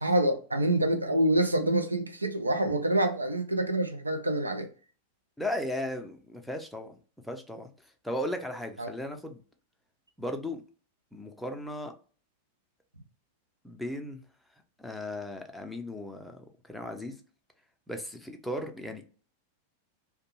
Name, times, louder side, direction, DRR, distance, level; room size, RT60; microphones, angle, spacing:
voice 1, 0.0-4.7 8.8-8.9, right 1 dB, 80° right, 0.5 m, -26 dB
voice 2, 5.4-7.0 7.2-7.7 8.0-9.4 10.2-10.6 11.1-11.9 13.6-14.2 14.8-17.2 17.9-19.1, left 1 dB, ahead, 0.5 m, -36 dB
2.5 x 2.2 x 2.9 m
figure-of-eight pair, 90°, 0 cm